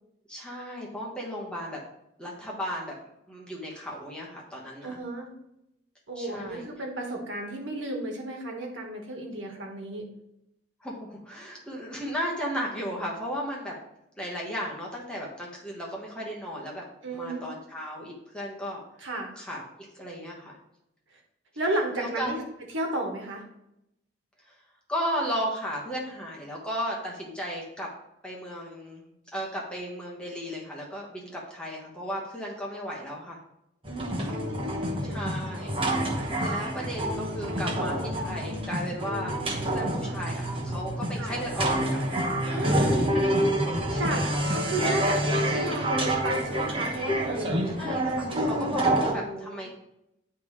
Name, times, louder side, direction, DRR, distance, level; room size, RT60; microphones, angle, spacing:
voice 1, 0.3-1.8 2.2-3.0 3.3-5.0 6.2-6.6 10.8-13.8 14.2-16.8 17.1-18.8 19.4-20.6 21.9-22.3 24.5-24.6 24.9-27.9 28.2-33.4 35.0-35.7 36.0-39.3 39.6-42.0 43.9-44.5 47.8-49.8, equal, 5° left, -3 dB, 1.4 m, -35 dB
voice 2, 4.8-5.3 6.1-10.0 17.0-17.4 19.0-19.3 21.1-21.2 21.5-22.4 22.7-23.4 33.9-35.2 41.1-41.3 42.4-42.9 44.0-44.2 44.5-47.6 48.8-49.6, right 1 dB, 80° right, 1 dB, 1.5 m, -33 dB
sound 1, 33.8-49.1, right 1 dB, 30° right, 1.1 m, -27 dB
10.5 x 3.5 x 3.3 m, 0.81 s
head